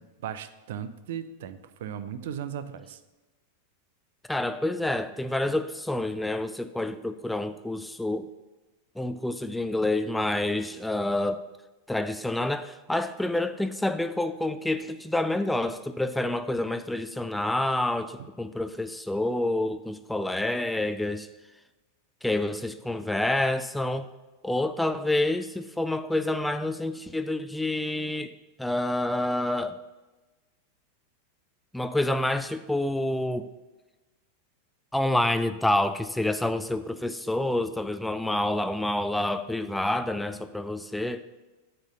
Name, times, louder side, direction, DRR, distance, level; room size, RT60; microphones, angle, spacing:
voice 1, 0.0-3.0, right 9 dB, 55° right, 12 dB, 0.5 m, -37 dB
voice 2, 4.3-8.3 9.0-11.4 11.9-21.3 22.2-24.1 24.4-28.3 28.6-29.8 31.7-33.5 34.9-41.2, left 1 dB, 5° left, 11 dB, 0.3 m, -28 dB
7.8 x 4.4 x 6.7 m, 1.1 s
figure-of-eight pair, 90°, 0 cm